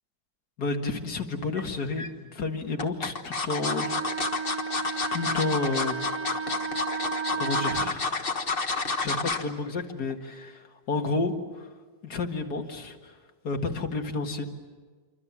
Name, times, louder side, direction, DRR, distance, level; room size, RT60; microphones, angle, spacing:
voice 1, 0.6-3.9 5.1-6.6 7.4-8.4 8.7-11.7 12.0-13.2 13.4-14.5, left 3 dB, 65° left, 4 dB, 2.4 m, -31 dB
sound 1, 1.6-2.1 2.8-9.5 9.9-10.1 10.4-10.5, left 3 dB, 35° left, 1.5 m, -30 dB
Wind instrument woodwind instrument, 3.6-7.9, right 5 dB, 50° right, 1.8 m, -33 dB
27.0 x 25.0 x 7.3 m, 1.4 s
omnidirectional pair, 1.8 m